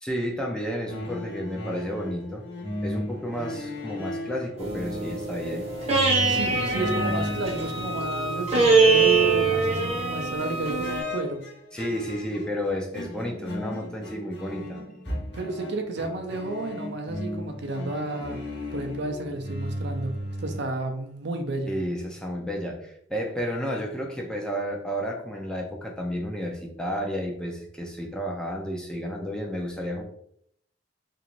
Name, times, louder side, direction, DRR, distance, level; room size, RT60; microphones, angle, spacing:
voice 1, 0.0-2.4 2.8-5.7 11.7-14.8 15.1-15.2 21.7-30.0, equal, 5° left, 0 dB, 0.5 m, -31 dB
sound 1, 0.9-8.4 8.7-10.3 10.8-20.6, left 1 dB, 65° left, 0.9 m, -36 dB
sound 2, 4.6-11.0, right 4 dB, 35° right, 0.8 m, -24 dB
voice 2, 6.3-11.4 15.3-18.4 18.7-21.7, right 2 dB, 60° right, 5 dB, 0.5 m, -31 dB
Wind instrument woodwind instrument, 6.5-11.3, equal, 85° left, 0.7 m, -36 dB
3.0 x 2.5 x 2.9 m, 0.69 s
head